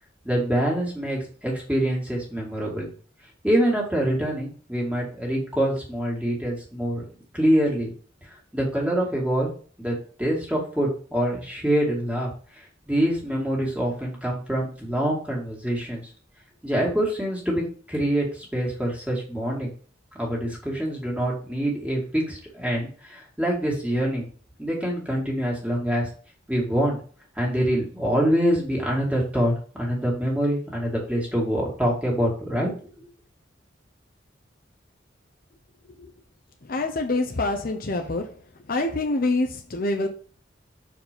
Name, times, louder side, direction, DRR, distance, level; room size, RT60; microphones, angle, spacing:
voice 1, 0.2-2.9 3.4-7.0 7.3-7.9 8.5-9.5 9.8-16.0 16.6-19.7 20.2-24.3 24.6-26.1 26.5-27.0 27.4-32.7, right 1 dB, 5° right, -3 dB, 2.4 m, -25 dB
voice 2, 36.6-38.4 38.7-40.1, left 2 dB, 50° left, 4 dB, 0.8 m, -26 dB
6.0 x 4.8 x 5.2 m, 0.43 s
head